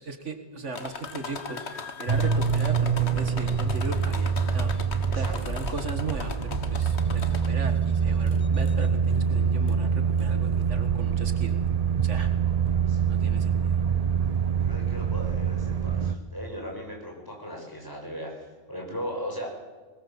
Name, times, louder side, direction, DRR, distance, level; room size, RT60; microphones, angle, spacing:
voice 1, 0.0-1.6 2.0-4.7 5.1-11.6 12.0-12.3 13.1-13.8, right 3 dB, 75° right, 7 dB, 2.1 m, -37 dB
sound 1, 0.7-7.8 8.3-8.9 9.7-9.8 10.2-10.3, left 4 dB, 65° left, 1.7 m, -39 dB
sound 2, 2.1-16.1, right 6 dB, 35° right, 0.9 m, -25 dB
voice 2, 14.6-19.5, equal, 15° left, 0 dB, 6.4 m, -38 dB
21.5 x 20.0 x 7.5 m, 1.3 s
omnidirectional pair, 1.2 m